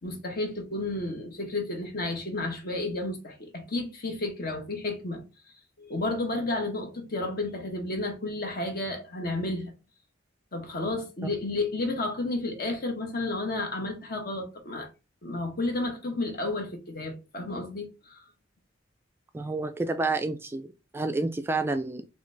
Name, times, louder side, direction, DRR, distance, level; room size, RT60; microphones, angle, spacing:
voice 1, 0.0-5.2 5.8-9.7 10.5-14.9 15.2-18.2, left 2 dB, 50° left, 1.1 m, -32 dB
voice 2, 19.3-22.1, right 3 dB, 10° right, 0.3 m, -29 dB
4.0 x 3.2 x 3.2 m
head